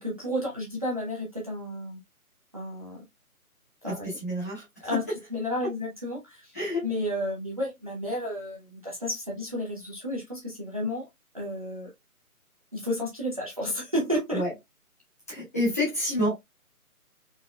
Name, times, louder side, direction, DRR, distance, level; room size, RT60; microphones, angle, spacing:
voice 1, 0.0-2.0 2.5-3.1 3.8-4.2 4.8-5.0 5.3-6.6 6.8-11.0 11.3-11.9 12.7-14.4, left 1 dB, 25° right, 0.6 m, -32 dB
voice 2, 3.8-4.6 4.9-5.0 6.5-6.8 14.3-14.5 15.3-16.3, left 1 dB, 10° left, 0.8 m, -28 dB
3.9 x 2.8 x 2.2 m
figure-of-eight pair, 150°, 44 cm